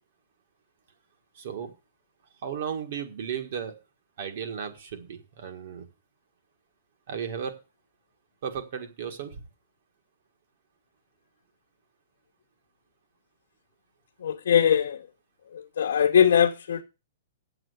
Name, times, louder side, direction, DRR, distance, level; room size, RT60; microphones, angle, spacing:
voice 1, 1.4-1.7 2.4-3.7 4.2-5.9 7.1-7.6 8.4-9.4, right 7 dB, 45° right, 1.7 m, -35 dB
voice 2, 14.2-15.0 15.5-16.8, left 8 dB, 75° left, 1.0 m, -21 dB
7.7 x 7.0 x 8.1 m
hypercardioid pair, 175°, 0 cm